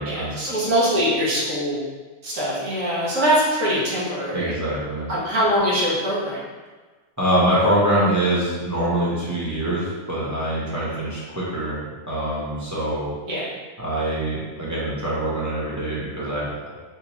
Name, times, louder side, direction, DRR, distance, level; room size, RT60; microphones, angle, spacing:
voice 1, 0.0-1.8 2.2-4.6 5.1-6.5 13.3-13.5, equal, 80° right, -7 dB, 1.4 m, -23 dB
voice 2, 4.3-5.1 7.2-13.1 13.8-16.8, right 1 dB, 20° right, -8 dB, 0.5 m, -24 dB
3.4 x 2.8 x 2.8 m, 1.3 s
omnidirectional pair, 1.4 m